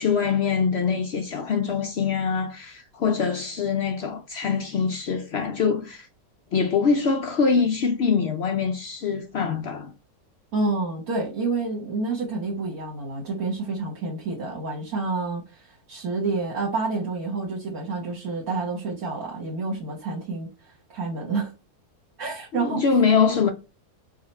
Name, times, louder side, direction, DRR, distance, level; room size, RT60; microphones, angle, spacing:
voice 1, 0.0-6.1 6.5-9.9 22.5-23.5, left 5 dB, 65° left, 0.6 m, -24 dB
voice 2, 10.5-21.5 22.2-22.8, right 3 dB, 70° right, 1.5 m, -29 dB
5.0 x 2.5 x 4.1 m
omnidirectional pair, 1.6 m